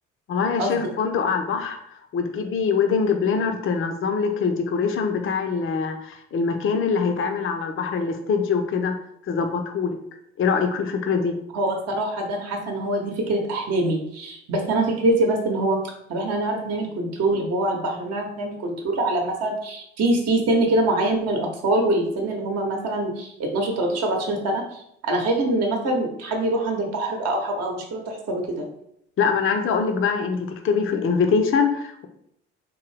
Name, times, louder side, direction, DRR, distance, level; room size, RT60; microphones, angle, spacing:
voice 1, 0.3-1.8 2.1-8.9 9.3-10.0 10.4-11.3 29.2-32.1, left 5 dB, 40° left, 5 dB, 0.6 m, -23 dB
voice 2, 11.5-15.8 16.1-28.7, right 1 dB, 50° right, 2 dB, 0.9 m, -24 dB
3.8 x 2.6 x 3.2 m, 0.75 s
hypercardioid pair, 50°, 33 cm